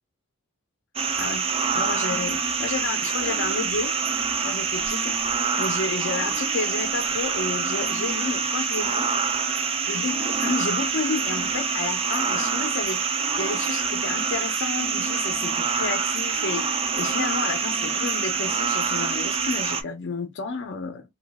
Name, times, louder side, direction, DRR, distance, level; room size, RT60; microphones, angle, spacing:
sound 1, 1.0-19.8, right 5 dB, 25° right, 0.4 m, -26 dB
voice 1, 1.7-3.9 4.4-5.2 5.6-9.1 9.9-13.0 13.4-16.7 17.0-21.0, left 4 dB, 55° left, 0.6 m, -31 dB
3.0 x 2.3 x 3.5 m
head